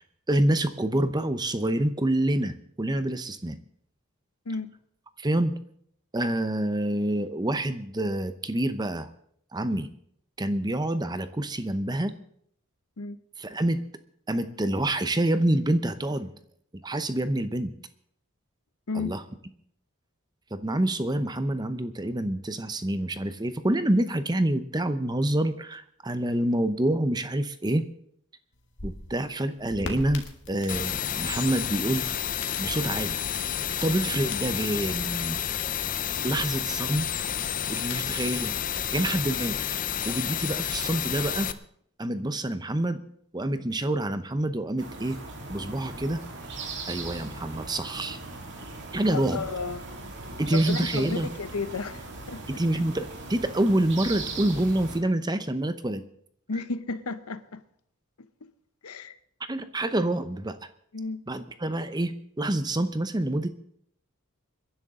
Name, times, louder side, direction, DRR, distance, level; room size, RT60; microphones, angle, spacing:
voice 1, 0.3-3.6 5.2-5.6 6.1-9.1 9.5-9.9 10.4-12.1 13.4-13.8 14.3-16.3 16.8-17.7 18.9-19.2 20.5-27.9 28.8-32.1 32.6-33.2 33.8-35.4 36.2-39.6 40.1-41.5 42.0-43.0 43.3-45.2 45.5-46.2 46.9-48.2 48.9-49.4 50.4-51.3 52.5-56.0 59.5-60.6 61.3-63.5, right 1 dB, 20° right, 0.8 m, -27 dB
voice 2, 4.5-4.8 13.0-13.2 18.9-19.2 49.1-49.8 50.5-52.4 56.5-57.6 58.4-58.5 58.8-59.2 60.9-61.2, left 4 dB, 85° left, 0.9 m, -33 dB
sound 1, 28.5-39.2, left 3 dB, 55° left, 1.9 m, -45 dB
sound 2, 30.7-41.5, left 9 dB, 35° left, 0.6 m, -30 dB
sound 3, 44.8-55.0, right 3 dB, 55° right, 2.5 m, -39 dB
26.0 x 11.0 x 3.8 m
head